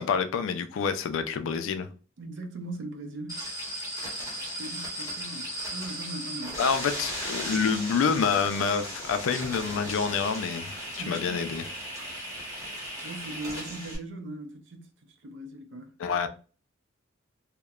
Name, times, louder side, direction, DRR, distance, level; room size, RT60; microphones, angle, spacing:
voice 1, 0.0-1.9 6.6-11.6 16.0-16.3, left 6 dB, 75° left, 0.3 m, -27 dB
voice 2, 2.2-3.4 4.6-6.6 11.0-11.4 13.0-14.9 15.2-15.9, right 2 dB, 65° right, 0.5 m, -39 dB
sound 1, 3.3-14.0, equal, 15° right, 0.9 m, -36 dB
2.9 x 2.0 x 2.3 m
head